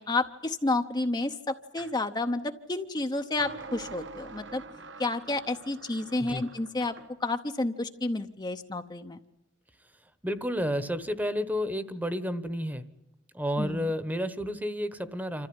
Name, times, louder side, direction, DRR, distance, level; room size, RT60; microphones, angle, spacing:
voice 1, 0.0-4.6 5.0-6.9 7.2-9.2 13.6-13.9, left 2 dB, 25° left, 6 dB, 0.8 m, -30 dB
sound 1, 1.8-2.0 3.4-7.1, right 3 dB, 85° right, 1.2 m, -45 dB
voice 2, 10.2-12.9 13.3-15.5, equal, 10° right, 13 dB, 1.1 m, -31 dB
27.0 x 14.5 x 9.6 m, 0.94 s
head